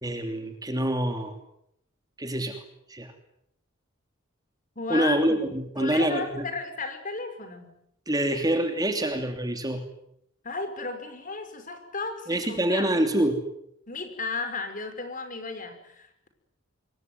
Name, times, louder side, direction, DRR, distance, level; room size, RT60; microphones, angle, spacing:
voice 1, 0.0-1.3 2.2-2.6 2.9-3.1 4.9-6.5 8.1-9.8 12.3-13.4, right 1 dB, 20° right, 6 dB, 3.0 m, -26 dB
voice 2, 4.8-7.7 10.4-13.0 13.9-16.3, left 4 dB, 40° left, 8 dB, 5.7 m, -34 dB
26.5 x 23.0 x 9.7 m, 0.76 s
head